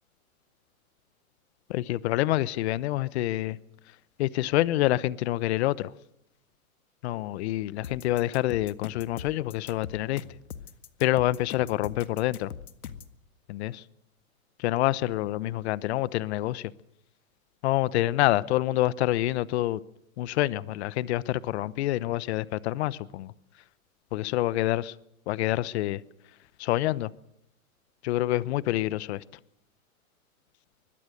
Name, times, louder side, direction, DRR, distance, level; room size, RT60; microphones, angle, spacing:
voice 1, 1.7-3.6 4.2-5.9 7.0-10.2 11.0-12.5 13.5-13.8 14.6-16.7 17.6-19.8 20.2-23.3 24.1-24.9 25.3-26.0 26.6-27.1 28.0-29.2, left 15 dB, 50° left, 1.0 m, -27 dB
sound 1, 7.8-13.1, left 8 dB, 80° left, 1.8 m, -42 dB
24.0 x 21.0 x 6.6 m
hypercardioid pair, 130°, 43 cm